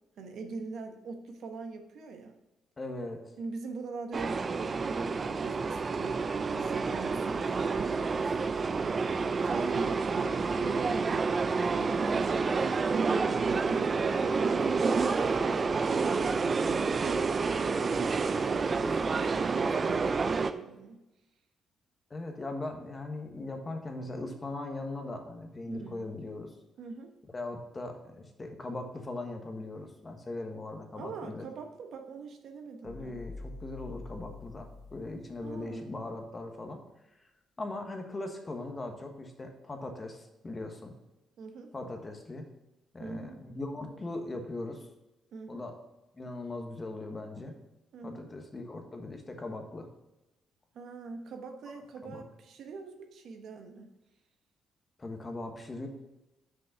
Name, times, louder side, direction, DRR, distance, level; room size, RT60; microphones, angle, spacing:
voice 1, 0.2-2.4 3.4-8.5 9.1-11.4 11.7-12.5 13.6-17.2 17.6-21.0 25.7-26.0 26.8-27.2 30.9-33.2 35.4-35.9 41.4-41.7 43.0-43.4 45.3-45.7 47.9-48.3 50.7-53.9, right 4 dB, 70° right, 5 dB, 1.0 m, -43 dB
voice 2, 2.8-3.2 13.2-13.6 22.1-26.5 27.3-31.4 32.8-36.8 37.6-40.9 41.7-42.5 42.9-44.9 45.5-45.8 46.1-47.5 48.0-49.9 52.0-52.2 55.0-55.9, left 2 dB, 25° left, 4 dB, 1.4 m, -39 dB
sound 1, 4.1-20.5, right 4 dB, 40° right, 0.5 m, -29 dB
sound 2, 32.9-35.6, left 4 dB, 55° left, 1.0 m, -46 dB
6.3 x 5.4 x 5.6 m, 0.99 s
cardioid pair, 90°, 0 cm